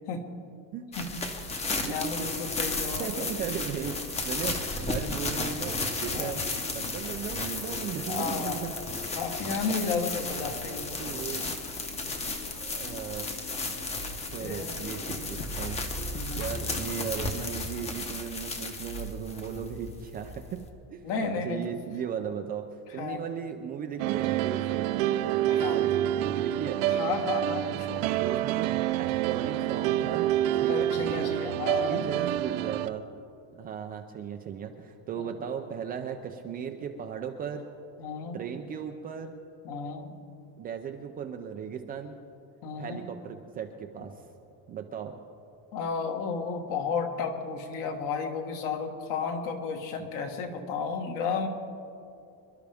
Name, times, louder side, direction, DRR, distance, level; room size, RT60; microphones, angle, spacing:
voice 1, 0.7-1.1 1.8-2.3 3.0-6.4 6.7-8.7 11.0-11.5 12.2-13.3 14.3-15.8 16.3-20.6 20.9-22.7 22.9-24.9 25.4-26.8 28.2-30.3 30.5-31.4 31.9-33.0 33.6-37.7 38.3-39.3 40.6-42.2 42.8-44.2 44.7-45.2 50.6-50.7, right 8 dB, 25° right, 4 dB, 0.4 m, -37 dB
sound 1, 0.9-20.7, left 2 dB, 15° left, 0.9 m, -34 dB
voice 2, 1.9-3.3 6.1-6.4 8.1-8.6 9.1-11.0 12.0-12.1 14.4-14.8 15.1-15.3 16.1-16.5 21.0-21.7 23.0-23.2 25.5-25.8 26.9-28.1 30.7-32.1 35.2-35.3 38.0-38.4 39.6-40.2 42.6-43.0 45.7-51.5, left 5 dB, 50° left, 4 dB, 1.7 m, -33 dB
sound 2, 2.1-16.8, left 4 dB, 70° left, 1.4 m, -46 dB
sound 3, 24.0-32.9, right 12 dB, 80° right, 0.7 m, -27 dB
26.5 x 11.5 x 3.5 m, 2.6 s
cardioid pair, 170°, 40 cm